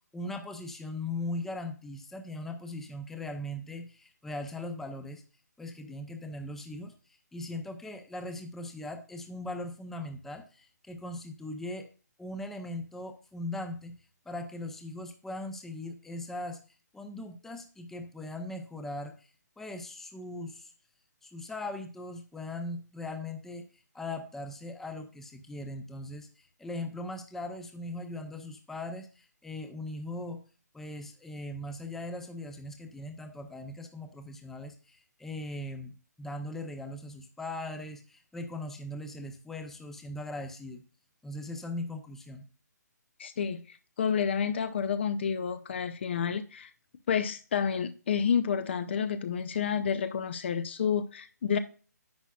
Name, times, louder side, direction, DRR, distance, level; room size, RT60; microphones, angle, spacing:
voice 1, 0.1-5.2 5.6-6.9 7.3-11.9 12.2-14.0 14.3-16.6 16.9-19.3 19.6-20.7 21.2-23.6 23.9-30.4 30.7-35.9 36.2-40.8 41.2-42.5, left 1 dB, 5° left, 0.7 m, -39 dB
voice 2, 43.2-46.7 47.1-51.6, left 7 dB, 40° left, 0.6 m, -30 dB
10.5 x 7.9 x 2.4 m
figure-of-eight pair, 140°, 9 cm